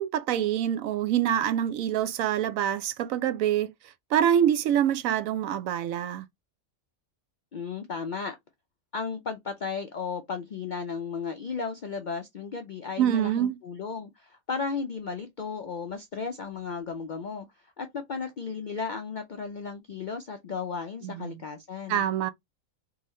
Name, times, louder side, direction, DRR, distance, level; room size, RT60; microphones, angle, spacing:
voice 1, 0.0-3.7 4.1-6.2 13.0-13.6 21.0-21.4 21.9-22.3, right 10 dB, 75° right, 1.0 m, -25 dB
voice 2, 7.5-8.4 8.9-17.5 17.8-22.1, left 5 dB, 65° left, 0.4 m, -34 dB
3.7 x 2.7 x 3.0 m
omnidirectional pair, 1.4 m